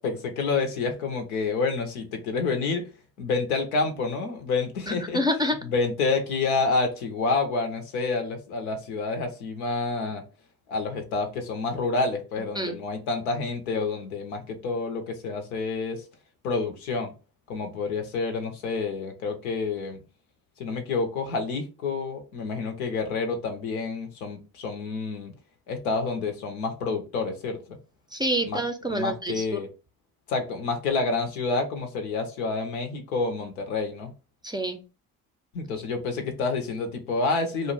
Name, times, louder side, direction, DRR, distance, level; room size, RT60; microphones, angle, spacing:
voice 1, 0.0-2.8 3.2-5.2 5.6-10.2 10.7-16.0 16.4-17.1 17.5-20.0 20.6-25.3 25.7-27.8 28.4-28.6 28.9-29.7 30.3-34.1 35.5-37.7, left 4 dB, 90° left, 0.7 m, -28 dB
voice 2, 4.9-5.6 12.6-12.8 28.1-29.6 34.4-34.8, equal, 10° right, 0.4 m, -27 dB
2.5 x 2.0 x 3.7 m
hypercardioid pair, 50°, 42 cm